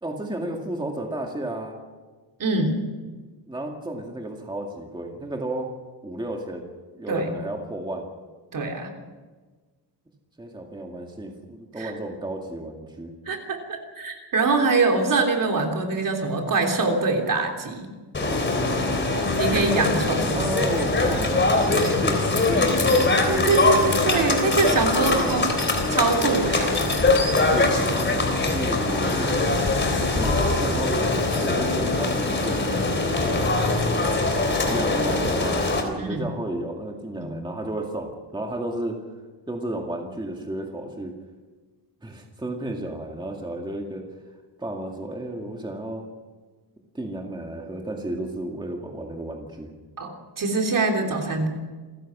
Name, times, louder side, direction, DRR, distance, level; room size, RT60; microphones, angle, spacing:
voice 1, 0.0-1.8 3.5-5.7 6.0-8.1 10.4-13.1 19.7-19.9 20.3-23.2 25.0-25.4 27.5-29.3 30.1-31.0 31.4-32.9 33.2-33.7 34.7-39.0 39.5-41.1 42.0-44.1 44.6-46.0 46.9-49.7, right 1 dB, 10° right, 1 dB, 2.1 m, -32 dB
voice 2, 2.4-2.8 7.1-7.3 8.5-8.9 11.8-11.9 13.3-17.9 19.4-20.5 21.7-22.0 23.3-25.5 25.9-26.7 36.0-36.3 37.2-37.4 50.0-51.5, right 3 dB, 50° right, 3 dB, 3.3 m, -24 dB
sound 1, 18.1-35.8, left 3 dB, 25° left, 3.5 m, -22 dB
28.0 x 16.0 x 6.2 m, 1.3 s
wide cardioid pair, 175°, 42 cm